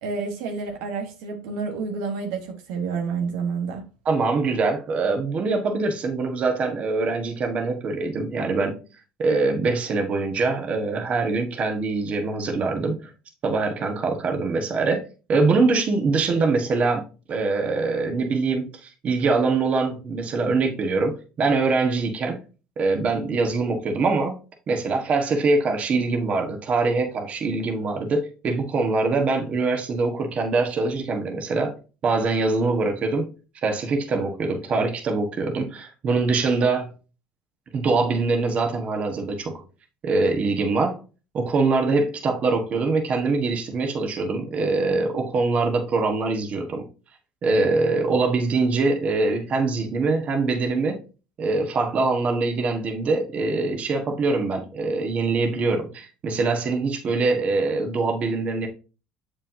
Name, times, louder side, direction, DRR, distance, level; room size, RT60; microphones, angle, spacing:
voice 1, 0.0-3.8, right 5 dB, 80° right, 1.3 m, -29 dB
voice 2, 4.0-8.8 9.2-13.1 13.4-15.0 15.3-17.0 17.3-22.4 22.8-24.3 24.7-31.8 32.0-33.3 33.6-36.9 37.7-39.6 40.0-41.0 41.3-46.8 47.4-51.0 51.4-58.7, right 3 dB, 40° right, 1.4 m, -23 dB
7.2 x 5.2 x 2.7 m
supercardioid pair, 110°, 3 cm